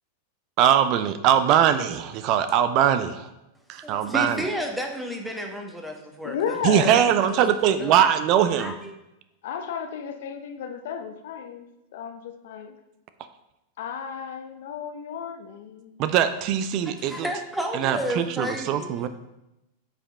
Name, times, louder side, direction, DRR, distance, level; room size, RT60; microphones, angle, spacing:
voice 1, 0.6-3.3 3.7-4.4 6.6-8.7 16.0-17.3 17.7-19.1, right 9 dB, 45° right, 11 dB, 0.4 m, -21 dB
voice 2, 3.8-6.6 6.8-8.1 8.6-8.9 16.8-19.1, equal, 5° right, 2 dB, 1.2 m, -32 dB
voice 3, 6.2-7.0 9.4-11.7 11.9-12.7 13.8-16.0, left 7 dB, 65° left, 7 dB, 0.7 m, -33 dB
8.5 x 5.0 x 3.4 m, 0.92 s
figure-of-eight pair, 95°, 0 cm